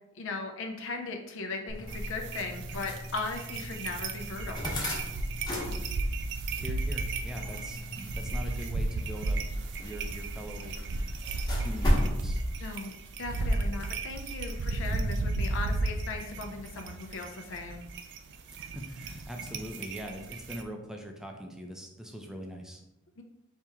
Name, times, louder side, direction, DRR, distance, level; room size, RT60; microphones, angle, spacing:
voice 1, 0.1-4.6 12.6-12.9 13.2-17.8 23.2-23.3, left 3 dB, 65° left, 4 dB, 0.5 m, -38 dB
sound 1, 1.7-12.2, equal, 20° left, 1.0 m, -35 dB
sound 2, 1.9-20.6, right 2 dB, 55° right, 0.4 m, -34 dB
voice 2, 6.5-9.4 9.8-10.7 11.1-11.2 11.6-12.4 18.5-22.8, equal, 5° right, 2 dB, 0.5 m, -42 dB
4.4 x 2.9 x 3.5 m, 0.88 s
head